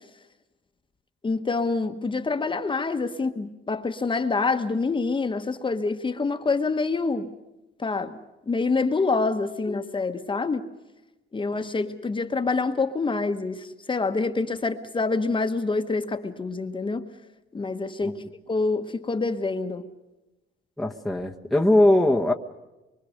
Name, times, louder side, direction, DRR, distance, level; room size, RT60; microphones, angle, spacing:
voice 1, 1.2-7.3 7.8-8.2 8.5-10.7 11.3-17.0 17.5-19.8, left 3 dB, 25° left, 1.3 m, -26 dB
voice 2, 20.8-22.3, left 1 dB, ahead, 1.1 m, -20 dB
24.5 x 24.0 x 6.5 m
cardioid pair, 125°, 21 cm